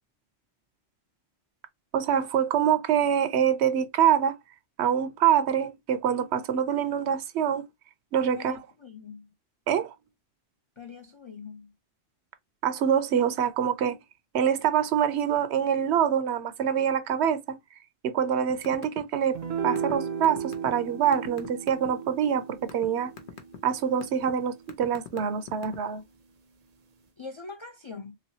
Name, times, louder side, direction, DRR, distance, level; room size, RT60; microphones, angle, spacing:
voice 1, 1.9-4.4 4.8-7.7 8.1-8.6 9.7-9.9 12.6-14.0 14.3-17.6 18.0-23.1 23.6-26.0, right 8 dB, 80° right, 0.9 m, -25 dB
voice 2, 8.3-9.3 10.8-11.7 27.2-28.2, left 4 dB, 45° left, 0.3 m, -43 dB
sound 1, 18.5-19.0 19.3-21.9 22.4-22.9 23.2-23.6 24.0-24.3 24.7-26.0, left 10 dB, 75° left, 1.0 m, -42 dB
sound 2, 19.3-25.9, right 7 dB, 50° right, 0.5 m, -36 dB
3.2 x 3.0 x 2.7 m
omnidirectional pair, 1.1 m